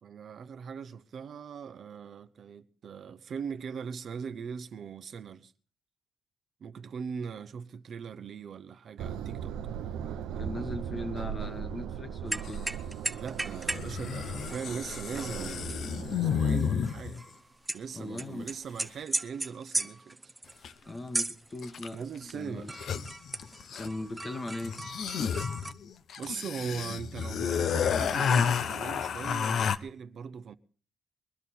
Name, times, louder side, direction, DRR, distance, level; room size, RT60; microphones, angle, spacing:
voice 1, 0.0-5.5 6.6-9.6 13.1-17.2 17.7-20.3 21.9-22.7 26.2-30.5, right 6 dB, 55° right, 0.8 m, -40 dB
sound 1, 9.0-16.6, right 9 dB, 90° right, 0.7 m, -38 dB
voice 2, 10.4-12.6 17.9-18.5 20.9-22.7 23.7-24.8, left 2 dB, 30° left, 1.4 m, -39 dB
sound 2, 12.3-13.9 14.2-17.8 18.2-22.3 22.7-25.7, right 2 dB, 15° right, 0.8 m, -37 dB
sound 3, 12.4-12.6 13.7-17.2 20.6-20.7 21.6-22.0 22.3-22.4 22.6-24.1 24.6-29.8, left 7 dB, 65° left, 0.8 m, -31 dB
22.5 x 11.0 x 4.3 m
cardioid pair, 90°, 0 cm